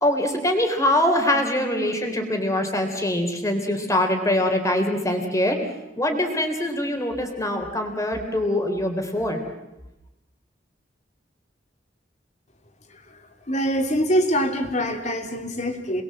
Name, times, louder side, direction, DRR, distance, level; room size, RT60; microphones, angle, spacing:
voice 1, 0.0-5.6 6.0-9.4, left 1 dB, 20° left, 4 dB, 3.7 m, -23 dB
voice 2, 13.5-16.0, equal, 40° left, 5 dB, 2.9 m, -24 dB
28.5 x 21.0 x 7.8 m, 0.97 s
head